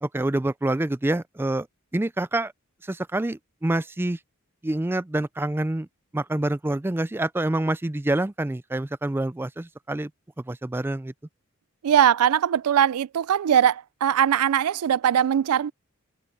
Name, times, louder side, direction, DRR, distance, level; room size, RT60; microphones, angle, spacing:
voice 1, 0.0-1.7 1.9-2.5 2.9-4.2 4.6-5.9 6.1-10.1 10.5-11.1, right 1 dB, 10° right, 0.3 m, -26 dB
voice 2, 11.8-15.7, right 9 dB, 90° right, 0.4 m, -21 dB
head